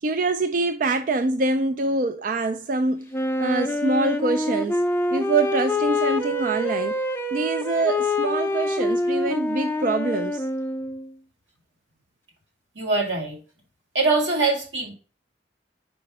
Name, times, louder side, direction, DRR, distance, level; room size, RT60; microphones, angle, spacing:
voice 1, 0.0-3.1 3.4-4.8 5.1-7.0 7.3-10.5, right 3 dB, 45° right, 0.4 m, -25 dB
Wind instrument woodwind instrument, 3.1-11.1, left 1 dB, 10° left, 0.5 m, -26 dB
voice 2, 12.8-13.4 13.9-14.9, right 3 dB, 75° right, 2.1 m, -23 dB
5.0 x 4.9 x 4.7 m
head